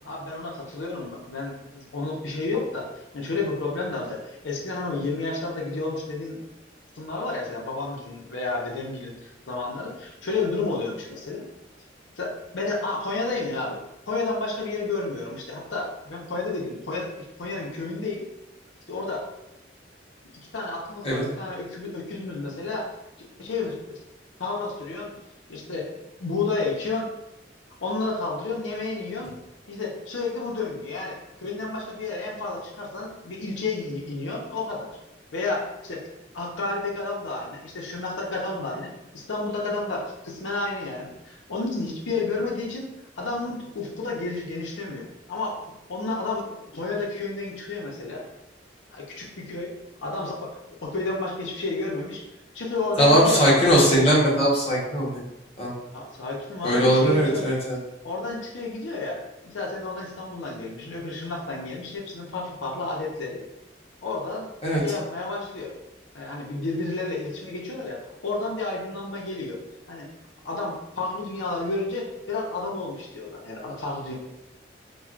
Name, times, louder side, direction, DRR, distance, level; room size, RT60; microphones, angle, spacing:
voice 1, 0.0-2.9 3.1-6.4 6.9-11.4 12.2-13.8 14.1-18.2 18.9-19.3 20.3-22.9 23.2-24.0 24.4-25.1 25.5-25.9 26.2-27.1 27.8-29.3 29.7-34.9 35.3-36.0 36.3-45.6 45.9-48.2 48.9-49.7 50.0-52.2 52.5-53.7 55.9-57.4 58.0-63.4 64.0-64.5 64.8-65.7 66.1-69.6 69.9-70.1 70.4-74.1, left 3 dB, 85° left, -2 dB, 0.7 m, -31 dB
voice 2, 53.0-55.2 55.6-55.7 56.6-57.8 64.6-64.8, equal, 35° left, -6 dB, 1.1 m, -20 dB
4.4 x 2.3 x 2.4 m, 0.90 s
head